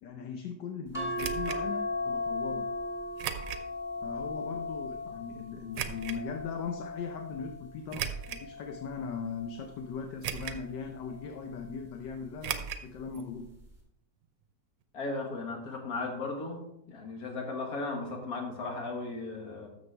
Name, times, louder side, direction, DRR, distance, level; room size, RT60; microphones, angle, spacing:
voice 1, 0.0-2.7 4.0-13.5, left 5 dB, 75° left, 5 dB, 1.4 m, -39 dB
sound 1, 0.9-7.6 8.2-9.6 10.8-11.3 11.6-11.7, left 2 dB, ahead, 2.6 m, -37 dB
sound 2, 1.2-1.6 3.2-3.7 4.2-4.3 5.7-6.2 7.9-8.5 9.1-9.2 10.2-10.7 11.0-11.1 12.4-12.9 13.1-13.2 13.5-13.6, right 8 dB, 80° right, 1.4 m, -36 dB
voice 2, 14.9-16.6 16.9-19.7, left 3 dB, 55° left, 2 dB, 2.0 m, -36 dB
12.5 x 6.7 x 3.4 m, 0.83 s
omnidirectional pair, 2.0 m